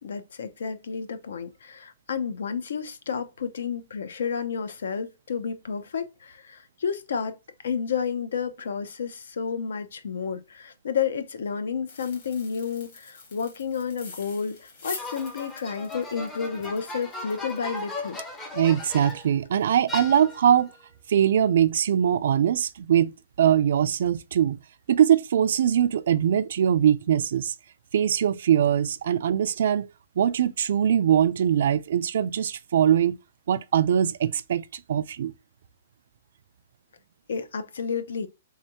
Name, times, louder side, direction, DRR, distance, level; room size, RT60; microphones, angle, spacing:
voice 1, 0.0-7.4 7.6-18.2 37.3-38.3, left 6 dB, 75° left, 0.7 m, -31 dB
sound 1, 11.9-19.7 20.0-20.1 20.5-20.7 21.1-21.3, left 4 dB, 40° left, 1.3 m, -45 dB
sound 2, 15.0-19.4 19.9-20.6, left 3 dB, 10° left, 0.5 m, -37 dB
voice 2, 18.5-20.7 21.1-24.6 24.9-27.5 27.9-29.9 30.2-33.2 33.5-35.3, right 9 dB, 55° right, 0.3 m, -22 dB
3.5 x 3.2 x 2.8 m
hypercardioid pair, 175°, 0 cm